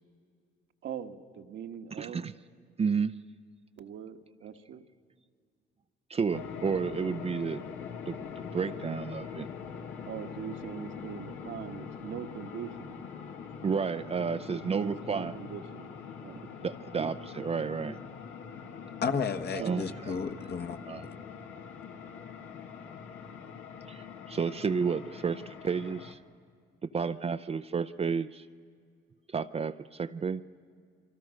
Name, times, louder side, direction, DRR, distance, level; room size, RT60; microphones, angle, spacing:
voice 1, 0.8-2.2 3.8-4.8 10.1-13.0 14.5-15.9 16.2-16.4 19.6-19.9, right 8 dB, 70° right, 5 dB, 1.4 m, -41 dB
voice 2, 2.0-2.3 2.8-3.2 6.1-7.6 8.1-9.5 13.6-15.3 16.6-18.0 19.5-20.2 20.9-21.0 23.9-26.2 26.8-28.5 29.3-30.4, right 5 dB, 30° right, 10 dB, 0.5 m, -31 dB
sound 1, 6.3-26.1, left 6 dB, 90° left, 1.8 m, -43 dB
voice 3, 19.0-20.8, left 6 dB, 55° left, 7 dB, 1.5 m, -32 dB
28.0 x 24.0 x 6.4 m, 2.1 s
cardioid pair, 90°, 20 cm